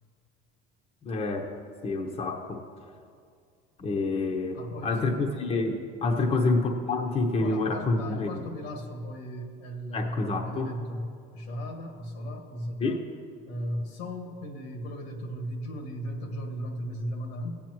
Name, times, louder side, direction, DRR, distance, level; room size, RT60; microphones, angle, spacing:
voice 1, 1.0-1.6 1.8-2.6 3.8-8.4 9.9-10.7 12.8-13.0, left 3 dB, 30° left, 2 dB, 0.9 m, -28 dB
voice 2, 4.5-5.3 6.1-6.4 7.4-11.1 11.3-13.0 13.5-17.6, equal, 85° left, 2 dB, 1.8 m, -36 dB
17.0 x 8.6 x 3.1 m, 2.2 s
supercardioid pair, 120°, 19 cm